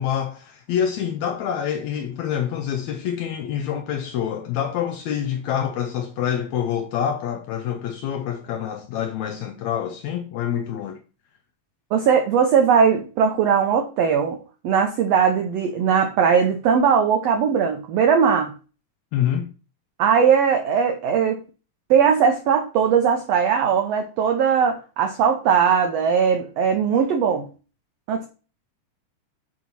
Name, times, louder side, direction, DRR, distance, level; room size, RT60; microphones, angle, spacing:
voice 1, 0.0-11.0 19.1-19.5, left 9 dB, 80° left, 1.6 m, -26 dB
voice 2, 11.9-14.4 14.6-18.5 20.0-21.4 21.9-27.5 28.1-28.3, right 7 dB, 85° right, 1.4 m, -19 dB
7.7 x 2.9 x 5.4 m
omnidirectional pair, 3.8 m